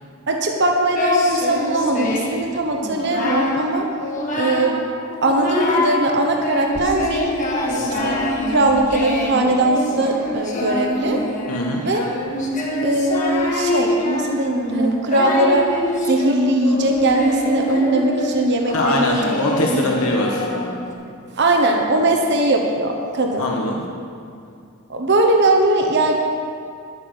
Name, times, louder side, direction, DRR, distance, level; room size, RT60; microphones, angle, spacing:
voice 1, 0.3-3.9 4.3-4.8 5.2-7.3 7.7-8.2 8.5-11.2 11.8-12.0 12.8-15.7 16.1-19.3 19.7-19.8 20.5-20.6 21.4-23.5 24.9-26.2, right 1 dB, 55° right, 2 dB, 1.0 m, -20 dB
Singing, 0.9-2.4 2.8-3.6 4.0-4.8 5.1-6.0 6.4-20.9, left 1 dB, 40° left, 1.8 m, -24 dB
voice 2, 11.5-11.8 18.7-20.5 23.4-23.8, left 1 dB, 80° left, -1 dB, 1.3 m, -22 dB
11.0 x 8.4 x 7.1 m, 2.4 s
head